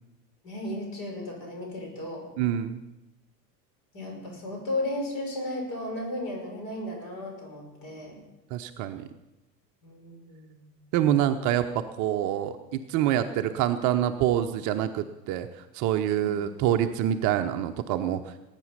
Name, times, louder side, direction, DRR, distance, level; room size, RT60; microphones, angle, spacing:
voice 1, 0.4-2.2 3.9-8.2 9.8-10.7 16.2-16.4, left 1 dB, 45° left, 0 dB, 6.3 m, -35 dB
voice 2, 2.4-2.8 8.5-9.1 10.9-15.5 15.7-18.4, right 11 dB, 35° right, 7 dB, 0.8 m, -26 dB
20.0 x 9.0 x 5.7 m, 0.99 s
figure-of-eight pair, 85°, 49 cm